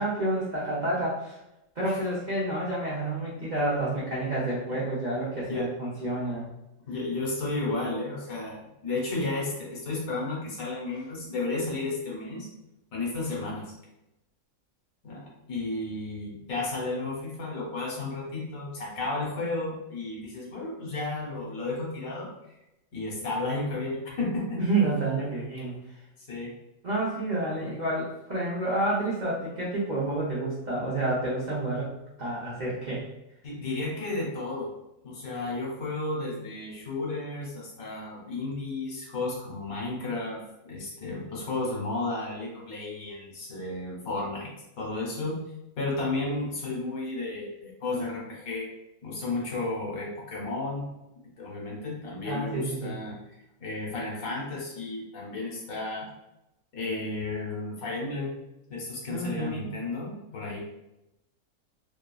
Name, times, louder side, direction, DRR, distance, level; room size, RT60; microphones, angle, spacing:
voice 1, 0.0-1.4 1.8-6.5 24.6-25.8 26.8-31.9 32.2-33.0 52.2-53.0 59.1-59.7, right 2 dB, 75° right, -7 dB, 0.4 m, -29 dB
voice 2, 6.9-12.5 12.9-13.7 15.0-22.3 22.9-24.6 26.3-26.5 33.4-34.7 35.0-45.4 45.8-48.7 49.0-50.9 51.4-53.2 53.6-56.1 56.7-58.3 58.7-60.6, left 2 dB, 70° left, -3 dB, 1.2 m, -33 dB
2.8 x 2.3 x 2.3 m, 0.89 s
omnidirectional pair, 1.6 m